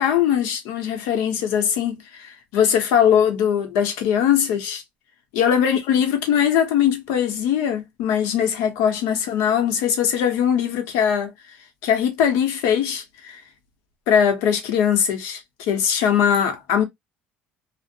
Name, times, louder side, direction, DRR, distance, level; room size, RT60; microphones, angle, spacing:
voice 1, 0.0-4.8 5.3-11.3 11.8-13.4 14.1-16.8, left 8 dB, 85° left, 0.8 m, -21 dB
2.5 x 2.0 x 2.6 m
cardioid pair, 135°, 4 cm